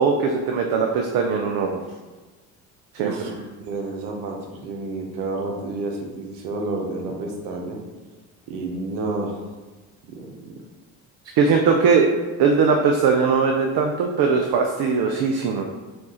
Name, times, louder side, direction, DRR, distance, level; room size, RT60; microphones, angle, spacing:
voice 1, 0.0-1.8 2.9-3.1 11.4-12.1 12.4-15.7, right 5 dB, 55° right, 2 dB, 0.6 m, -20 dB
voice 2, 3.0-7.8 8.5-9.4 10.1-10.6, right 2 dB, 85° right, 1 dB, 0.9 m, -30 dB
4.4 x 2.4 x 4.3 m, 1.3 s
hypercardioid pair, 65°, 43 cm